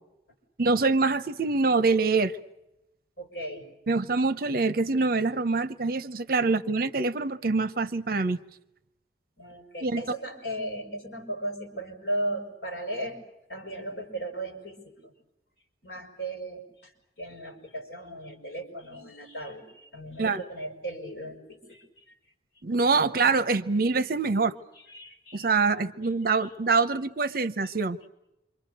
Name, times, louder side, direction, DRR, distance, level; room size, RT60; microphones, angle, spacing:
voice 1, 0.6-2.3 3.9-8.4 9.8-10.0 20.2-20.4 22.6-24.5 25.3-28.0, right 4 dB, 55° right, 0.8 m, -25 dB
voice 2, 3.2-3.7 6.4-6.5 9.4-13.2 13.5-15.1 15.8-16.9 17.2-22.0 23.1-23.6 24.8-25.8 26.4-26.5 26.8-27.0 27.3-27.7, right 1 dB, 60° left, 5.8 m, -37 dB
28.0 x 25.0 x 6.7 m
head